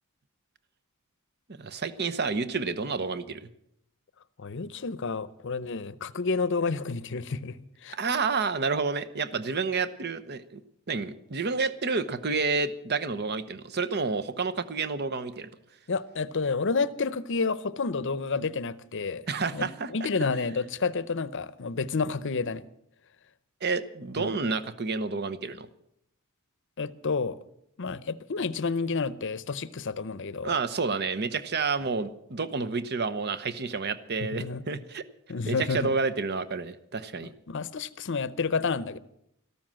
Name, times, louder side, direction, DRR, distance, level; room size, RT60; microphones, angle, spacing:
voice 1, 1.6-3.5 7.9-10.6 10.9-15.5 19.3-19.9 23.6-25.7 30.4-35.0 35.4-37.3, right 4 dB, 50° right, 0.9 m, -29 dB
voice 2, 4.4-7.6 7.8-8.0 15.9-19.2 19.5-22.6 24.2-24.3 26.8-27.4 27.8-30.6 34.4-34.6 35.3-35.9 37.5-39.0, left 4 dB, 60° left, 0.7 m, -30 dB
13.5 x 12.5 x 7.5 m
head